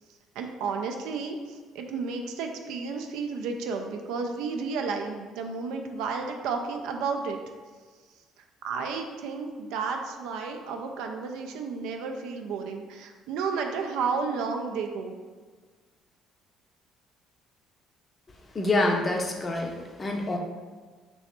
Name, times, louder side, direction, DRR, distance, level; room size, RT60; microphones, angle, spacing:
voice 1, 0.4-7.4 8.6-15.2, right 5 dB, 65° right, 3 dB, 0.3 m, -32 dB
voice 2, 18.5-19.7 20.0-20.4, left 2 dB, 30° left, 2 dB, 0.6 m, -26 dB
3.1 x 3.0 x 2.9 m, 1.5 s
figure-of-eight pair, 50°, 0 cm